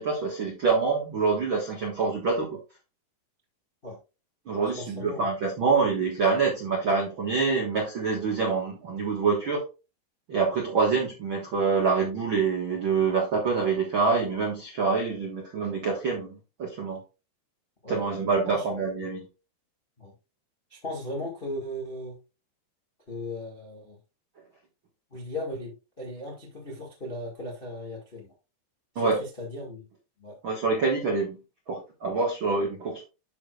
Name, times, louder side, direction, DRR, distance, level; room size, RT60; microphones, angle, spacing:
voice 1, 0.0-2.6 4.5-9.6 10.3-17.0 17.9-19.3 28.9-29.2 30.4-31.4 31.7-33.0, right 4 dB, 65° right, -1 dB, 1.2 m, -26 dB
voice 2, 4.8-5.3 17.8-18.0 18.5-18.6 20.0-20.1 20.7-22.2 23.1-24.0 25.1-28.3 28.9-29.8 30.2-30.4, left 1 dB, 55° left, -2 dB, 0.6 m, -37 dB
12.0 x 4.9 x 2.4 m, 0.29 s
omnidirectional pair, 4.7 m